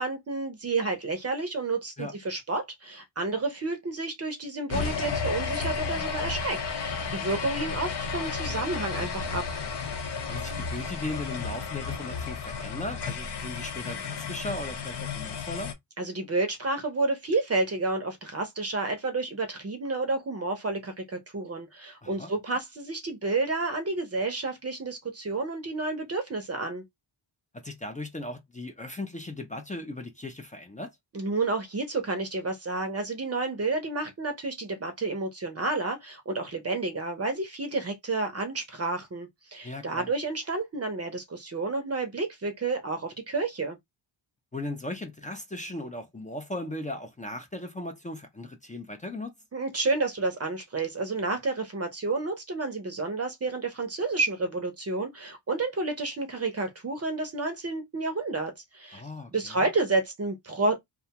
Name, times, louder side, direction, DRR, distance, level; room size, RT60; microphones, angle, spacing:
voice 1, 0.0-9.5 16.0-26.8 31.1-43.8 49.5-59.0 59.3-60.8, right 3 dB, 30° right, 0.6 m, -30 dB
sound 1, 4.7-15.7, left 5 dB, 60° left, 0.7 m, -33 dB
voice 2, 10.3-15.7 22.0-22.3 27.6-30.9 39.6-40.1 44.5-49.3 58.9-59.7, left 1 dB, 15° left, 0.4 m, -37 dB
2.4 x 2.2 x 2.8 m
wide cardioid pair, 105°, 47 cm